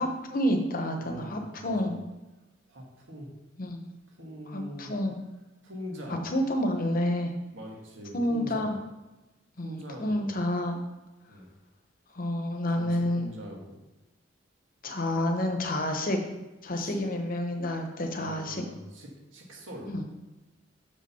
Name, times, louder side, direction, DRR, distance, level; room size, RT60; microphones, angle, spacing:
voice 1, 0.0-1.9 3.6-3.8 4.5-5.2 6.1-7.3 8.1-8.7 9.6-10.7 12.1-13.3 14.8-16.2 16.6-18.6 19.9-20.0, left 1 dB, 45° left, 5 dB, 1.0 m, -29 dB
voice 2, 1.0-1.9 2.7-3.3 4.1-4.9 5.6-6.2 7.5-8.7 9.6-10.4 11.3-11.5 12.7-13.8 16.8-17.0 18.2-19.9, equal, 80° right, 0 dB, 1.9 m, -43 dB
6.3 x 5.3 x 5.6 m, 1.1 s
head